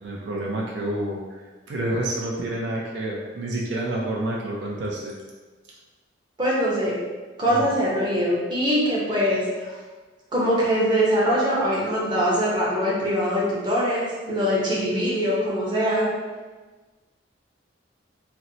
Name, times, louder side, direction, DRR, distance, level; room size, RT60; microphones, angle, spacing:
voice 1, 0.0-5.2 7.5-7.7, right 1 dB, 65° right, -3 dB, 0.5 m, -29 dB
voice 2, 6.4-7.0 7.4-9.7 10.3-16.1, equal, 25° right, -6 dB, 0.7 m, -22 dB
4.2 x 2.0 x 2.6 m, 1.3 s
head